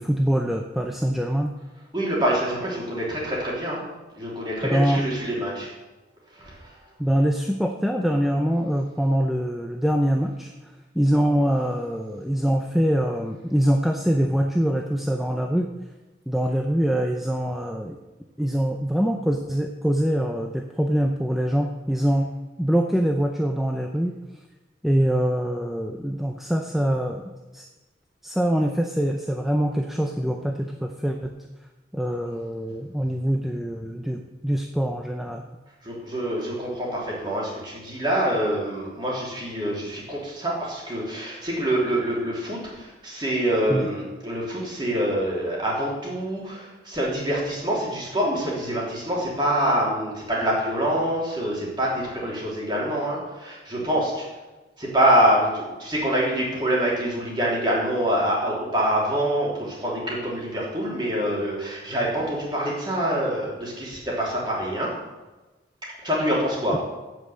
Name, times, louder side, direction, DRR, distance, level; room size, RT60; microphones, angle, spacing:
voice 1, 0.0-1.6 4.6-5.0 7.0-10.5 10.9-15.7 16.3-18.0 18.4-22.3 22.6-24.1 24.8-27.2 27.5-27.6 28.2-31.4 31.9-35.4 43.7-43.9, equal, ahead, 3 dB, 0.5 m, -24 dB
voice 2, 1.9-3.8 4.2-5.7 6.3-6.7 35.8-54.2 54.8-64.9 66.0-66.8, right 1 dB, 25° right, -4 dB, 3.3 m, -25 dB
8.3 x 7.6 x 7.9 m, 1.1 s
head